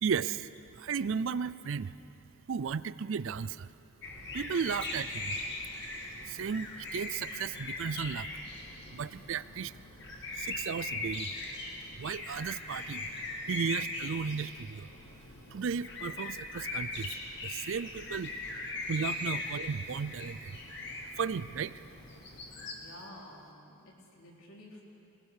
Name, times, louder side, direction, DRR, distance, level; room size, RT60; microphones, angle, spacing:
voice 1, 0.0-1.9 2.5-3.7 4.3-5.4 6.2-8.3 8.9-9.7 10.3-11.3 12.0-13.1 13.4-14.9 15.5-18.3 18.9-20.6 21.2-21.9, right 6 dB, 60° right, 16 dB, 0.4 m, -35 dB
sound 1, 4.0-22.7, left 2 dB, 50° left, 2.4 m, -40 dB
voice 2, 22.7-25.0, left 1 dB, 75° left, -2 dB, 3.7 m, -51 dB
21.0 x 20.0 x 6.7 m, 2.8 s
head